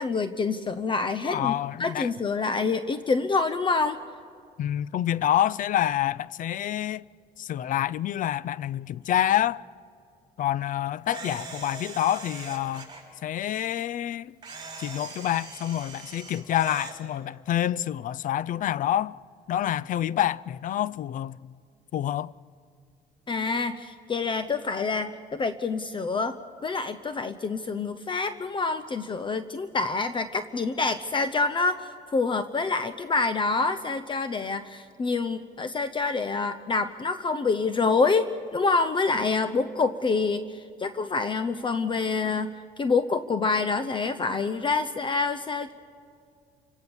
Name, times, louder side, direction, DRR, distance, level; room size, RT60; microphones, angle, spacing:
voice 1, 0.0-1.5 1.8-4.0 23.3-45.7, left 4 dB, 30° left, 0.8 m, -27 dB
voice 2, 1.3-2.1 4.6-7.1 7.4-9.6 10.4-12.9 13.2-14.4 14.8-19.2 19.5-21.5 21.9-22.3, left 11 dB, 50° left, 0.5 m, -27 dB
Camera, 11.1-13.0 14.4-17.0, right 4 dB, 25° right, 6.6 m, -41 dB
29.5 x 17.5 x 7.1 m
cardioid pair, 110°, 17 cm